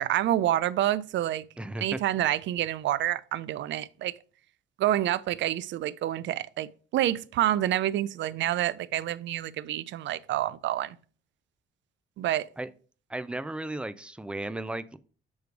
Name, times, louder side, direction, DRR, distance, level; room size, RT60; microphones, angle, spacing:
voice 1, 0.0-1.4 1.8-4.1 4.8-11.0 12.2-12.5, right 13 dB, 70° right, 0.4 m, -28 dB
voice 2, 1.6-2.0 12.6-12.7 13.1-15.0, right 2 dB, 5° right, 0.4 m, -35 dB
7.1 x 3.2 x 4.6 m
cardioid pair, 90°, 20 cm